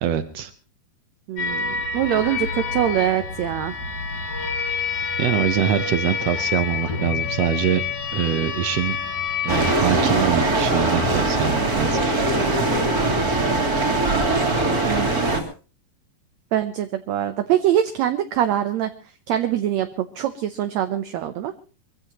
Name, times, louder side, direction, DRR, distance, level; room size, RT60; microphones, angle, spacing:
voice 1, 0.0-0.5 5.2-7.8 8.1-9.0 9.4-12.0, right 9 dB, 90° right, 11 dB, 1.4 m, -24 dB
voice 2, 1.3-3.7 14.9-15.1 16.5-18.9 19.3-21.5, right 11 dB, 75° right, 9 dB, 1.7 m, -23 dB
sound 1, 1.4-9.9, left 5 dB, 65° left, 4.9 m, -27 dB
sound 2, 9.5-15.4, right 2 dB, 30° right, 2.7 m, -21 dB
24.0 x 16.0 x 3.0 m, 0.36 s
omnidirectional pair, 4.1 m